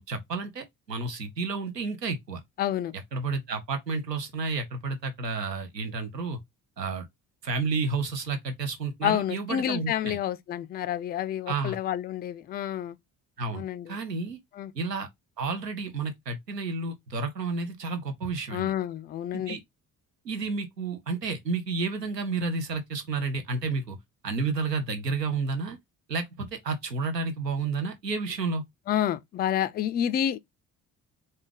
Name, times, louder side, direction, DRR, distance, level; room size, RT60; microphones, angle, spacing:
voice 1, 0.0-2.4 2.9-6.4 6.8-7.1 7.4-10.2 11.5-11.8 13.4-14.4 14.7-15.1 15.4-18.7 19.3-19.6 20.2-24.0 24.2-25.8 26.1-28.6, right 4 dB, 85° right, 0.7 m, -31 dB
voice 2, 2.6-2.9 9.0-13.0 13.5-14.0 14.5-14.7 18.5-19.6 28.9-30.4, left 10 dB, 25° left, 0.3 m, -29 dB
3.8 x 3.2 x 3.6 m
figure-of-eight pair, 45°, 48 cm